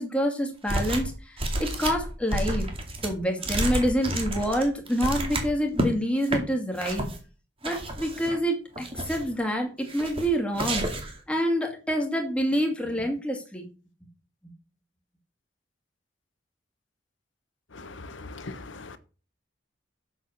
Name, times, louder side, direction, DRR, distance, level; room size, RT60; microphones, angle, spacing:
voice 1, 0.0-1.3 1.6-2.7 3.0-7.1 7.6-10.9 11.3-13.7, equal, 5° left, 2.4 m, -27 dB
sound 1, 0.7-1.1 1.4-5.9 6.2-6.4 6.8-7.2 7.6-8.4 8.7-9.3 9.9-10.3 10.5-11.2, right 1 dB, 30° right, 2.3 m, -30 dB
voice 2, 17.7-19.0, left 3 dB, 85° left, 1.1 m, -40 dB
7.6 x 6.9 x 6.6 m
head